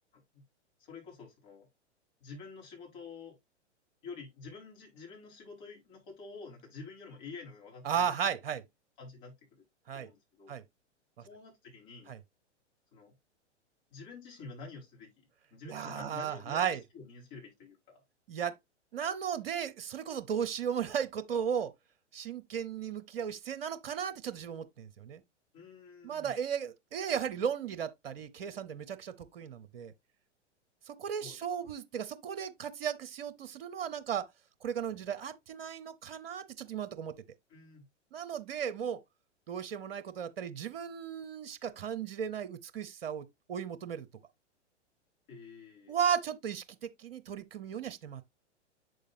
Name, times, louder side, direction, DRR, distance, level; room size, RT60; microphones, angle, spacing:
voice 1, 0.8-1.7 2.2-3.4 4.0-8.1 9.0-9.6 9.9-10.6 11.2-12.1 12.9-13.1 13.9-18.0 25.5-26.3 31.2-31.4 37.5-37.8 45.3-46.0, left 4 dB, 40° left, 4.7 m, -49 dB
voice 2, 7.8-8.6 9.9-10.1 10.5-10.6 11.2-11.3 12.1-12.2 15.7-16.8 18.3-18.6 18.9-21.7 22.1-25.2 26.0-29.9 30.9-34.3 34.6-37.1 38.1-39.0 39.5-44.1 45.9-48.2, right 8 dB, 55° right, 0.9 m, -35 dB
7.7 x 6.5 x 2.6 m
figure-of-eight pair, 105°, 36 cm